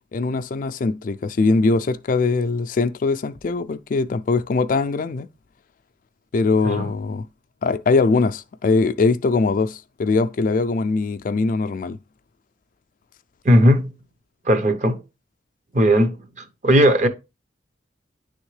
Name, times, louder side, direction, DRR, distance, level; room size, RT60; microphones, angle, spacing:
voice 1, 0.1-5.3 6.3-7.2 7.6-12.0, left 3 dB, 50° left, 0.3 m, -21 dB
voice 2, 13.4-13.9 14.5-15.0 15.7-16.2 16.6-17.1, equal, 40° right, 0.8 m, -16 dB
9.8 x 3.5 x 3.2 m
head